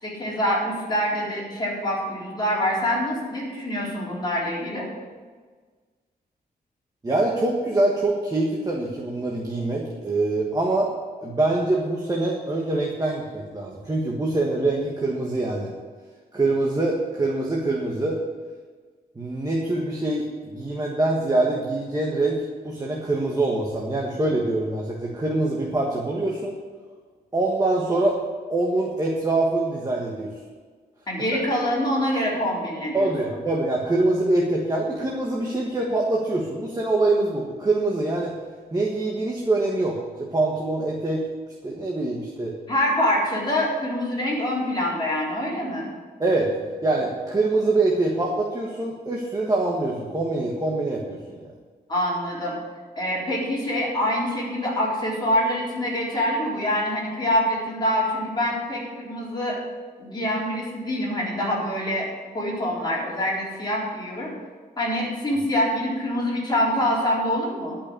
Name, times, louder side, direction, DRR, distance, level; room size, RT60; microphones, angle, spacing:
voice 1, 0.0-4.9 31.1-33.1 42.7-45.9 51.9-52.5 53.0-59.6 60.0-62.1 62.3-64.3 64.8-67.8, equal, 25° left, -6 dB, 4.0 m, -25 dB
voice 2, 7.0-10.9 11.2-15.7 16.3-18.2 19.1-26.6 27.3-28.2 28.5-30.3 32.9-38.4 38.7-41.3 41.6-42.5 46.2-46.5 46.8-51.3, right 2 dB, 20° right, -2 dB, 1.4 m, -24 dB
11.5 x 5.8 x 8.6 m, 1.5 s
wide cardioid pair, 130°, 17 cm